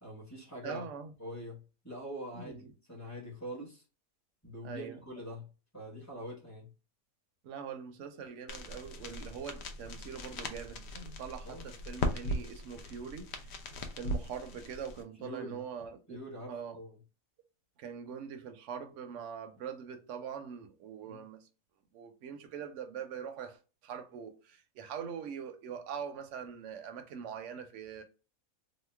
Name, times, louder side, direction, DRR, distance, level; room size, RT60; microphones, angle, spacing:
voice 1, 0.0-0.9 1.2-3.8 4.4-5.5 5.7-6.7 11.4-11.7 15.2-15.6 16.1-17.0 21.0-21.2, equal, 15° left, 0.9 m, -44 dB
voice 2, 0.6-1.1 2.3-2.7 4.6-5.0 7.4-13.5 14.0-16.2 16.5-16.8 17.8-21.5 21.9-28.0, right 7 dB, 65° right, 0.8 m, -43 dB
sound 1, 8.5-15.0, left 1 dB, 65° left, 0.6 m, -39 dB
3.0 x 2.0 x 3.3 m
omnidirectional pair, 1.6 m